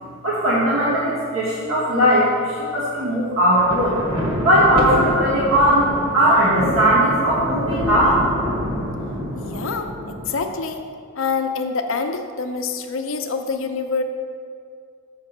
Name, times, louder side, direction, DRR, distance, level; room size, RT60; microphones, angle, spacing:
voice 1, 0.2-4.0 4.4-8.2, equal, 75° right, -9 dB, 1.8 m, -18 dB
Thunder, 3.4-10.6, equal, 25° right, 1.3 m, -27 dB
voice 2, 9.4-10.8 11.1-14.0, left 4 dB, 75° left, 5 dB, 0.7 m, -26 dB
6.8 x 5.3 x 6.6 m, 2.3 s
head